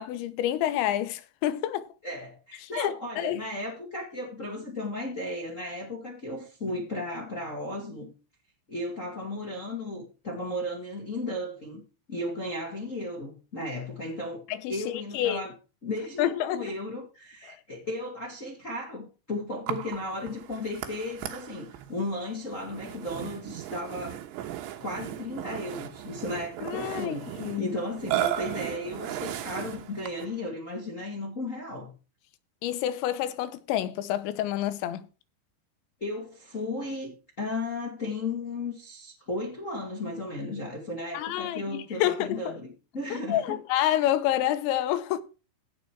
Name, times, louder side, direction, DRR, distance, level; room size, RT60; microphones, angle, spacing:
voice 1, 0.0-1.9 2.6-3.4 14.5-15.4 16.2-16.7 17.5-17.6 26.6-27.7 32.6-35.1 41.1-42.4 43.1-45.2, left 12 dB, 80° left, 3.1 m, -28 dB
voice 2, 2.0-8.1 8.7-11.8 12.1-14.4 14.7-15.5 15.8-24.2 24.8-27.3 27.6-31.9 36.0-42.7 42.9-43.6, left 2 dB, 60° left, 0.8 m, -35 dB
Burping eructation, 19.7-30.4, right 12 dB, 80° right, 3.3 m, -36 dB
16.0 x 5.4 x 4.6 m
omnidirectional pair, 5.3 m